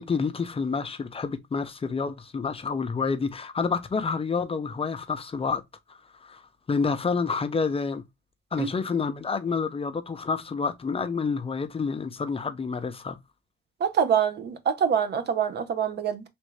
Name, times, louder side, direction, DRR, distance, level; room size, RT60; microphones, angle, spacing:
voice 1, 0.0-5.6 5.9-6.4 6.7-8.0 8.5-13.2, left 5 dB, 30° left, 0.6 m, -28 dB
voice 2, 13.8-16.2, right 7 dB, 55° right, 0.7 m, -25 dB
3.6 x 2.6 x 3.2 m
cardioid pair, 90°, 20 cm